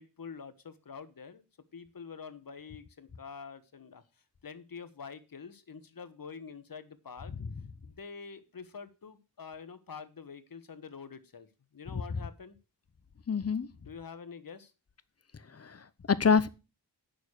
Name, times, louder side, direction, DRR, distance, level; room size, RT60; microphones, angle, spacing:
voice 1, 0.0-1.4 1.7-4.0 4.4-7.3 7.8-12.6 13.8-14.7, left 5 dB, 55° left, 1.3 m, -46 dB
voice 2, 13.3-13.7 15.5-16.5, left 5 dB, 35° left, 0.8 m, -27 dB
9.2 x 6.7 x 6.5 m
wide cardioid pair, 100°, 41 cm